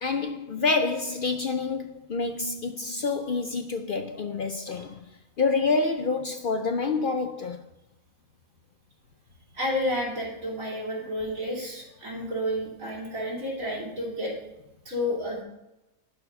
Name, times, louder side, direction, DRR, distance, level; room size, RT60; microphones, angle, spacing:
voice 1, 0.0-5.0 5.4-7.6, left 4 dB, 65° left, 0.5 m, -27 dB
voice 2, 9.5-14.3 14.8-15.4, left 1 dB, 70° right, 3.2 m, -30 dB
11.5 x 4.6 x 5.4 m
omnidirectional pair, 1.5 m